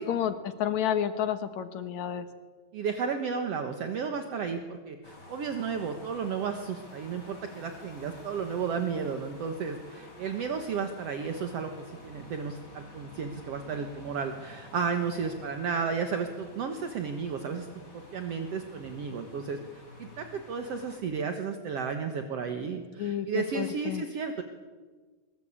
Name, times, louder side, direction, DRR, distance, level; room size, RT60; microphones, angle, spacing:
voice 1, 0.0-2.3 23.0-24.0, left 9 dB, 75° left, 9 dB, 2.5 m, -30 dB
voice 2, 2.7-11.7 12.0-17.7 18.1-24.4, right 6 dB, 60° right, 6 dB, 2.3 m, -33 dB
sound 1, 5.0-21.0, left 1 dB, 35° left, 6.1 m, -50 dB
23.0 x 21.0 x 8.8 m, 1.4 s
omnidirectional pair, 3.3 m